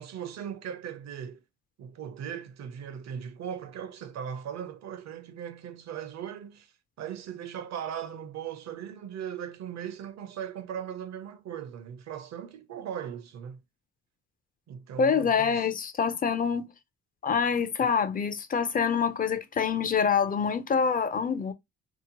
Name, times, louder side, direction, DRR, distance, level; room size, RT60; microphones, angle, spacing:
voice 1, 0.0-1.4 1.8-6.7 7.0-13.6 14.7-15.7, right 9 dB, 60° right, 0.6 m, -38 dB
voice 2, 15.0-16.7 17.2-21.5, left 6 dB, 30° left, 0.4 m, -26 dB
2.9 x 2.0 x 2.8 m
cardioid pair, 90°, 30 cm